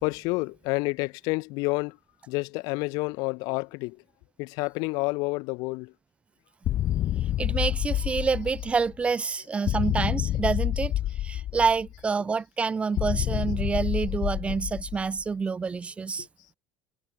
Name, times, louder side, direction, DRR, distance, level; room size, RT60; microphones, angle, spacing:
voice 1, 0.0-2.0 2.3-4.0 4.4-5.9 9.2-9.3 9.5-9.7 16.2-16.3, left 27 dB, 65° left, 0.8 m, -29 dB
sound 1, 6.6-8.9 9.7-12.0 13.0-15.2, left 13 dB, 40° left, 1.3 m, -28 dB
voice 2, 7.4-16.3, right 5 dB, 15° right, 0.5 m, -27 dB
cardioid pair, 150°, 7 cm